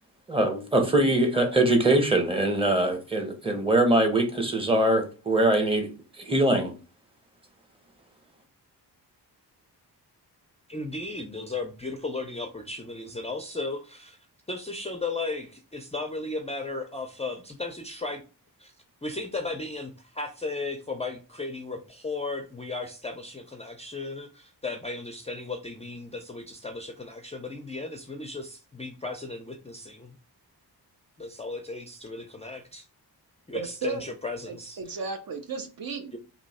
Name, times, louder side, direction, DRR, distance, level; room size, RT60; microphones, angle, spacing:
voice 1, 0.3-5.9 6.2-6.7, right 1 dB, 15° right, 0.8 m, -22 dB
voice 2, 10.7-18.2 18.6-18.7 19.0-30.2 31.2-32.9 33.5-35.0 36.1-36.2, left 3 dB, 15° left, 0.4 m, -35 dB
voice 3, 33.5-34.0 34.5-36.1, right 5 dB, 55° right, 0.7 m, -34 dB
3.0 x 2.7 x 4.1 m
wide cardioid pair, 130°, 41 cm